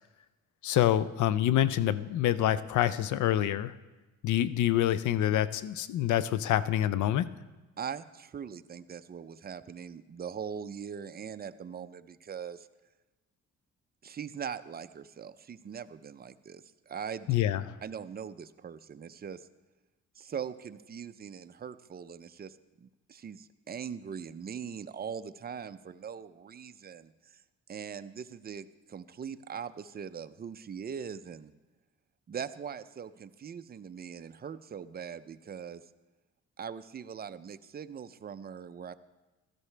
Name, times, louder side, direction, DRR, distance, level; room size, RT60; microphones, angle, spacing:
voice 1, 0.6-3.7 4.2-7.3 17.3-17.8, left 12 dB, 75° left, 15 dB, 0.6 m, -26 dB
voice 2, 7.8-12.7 14.0-17.3 17.8-19.5 20.2-27.4 27.7-31.5 32.3-35.8 36.6-38.9, right 7 dB, 30° right, 11 dB, 0.6 m, -41 dB
16.0 x 13.0 x 3.3 m, 1.1 s
cardioid pair, 90°, 30 cm